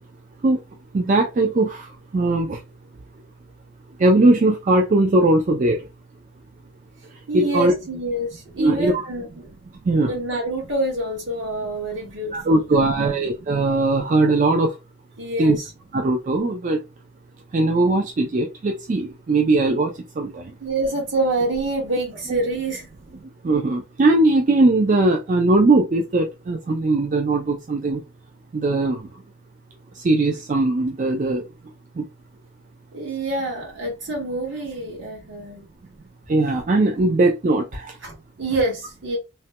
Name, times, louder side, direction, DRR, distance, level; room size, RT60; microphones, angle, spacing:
voice 1, 0.9-2.6 4.0-5.9 7.1-7.7 8.6-9.0 9.8-10.2 12.3-14.8 15.4-15.6 15.9-16.8 17.5-20.5 22.3-22.4 23.2-28.0 28.5-29.2 29.9-31.4 31.9-32.1 36.3-38.0, right 2 dB, 35° right, 0.4 m, -20 dB
voice 2, 7.3-9.5 10.1-13.1 15.2-15.5 20.6-22.9 32.9-35.6 38.0-39.2, right 2 dB, 60° right, 1.5 m, -26 dB
3.2 x 2.1 x 2.8 m
head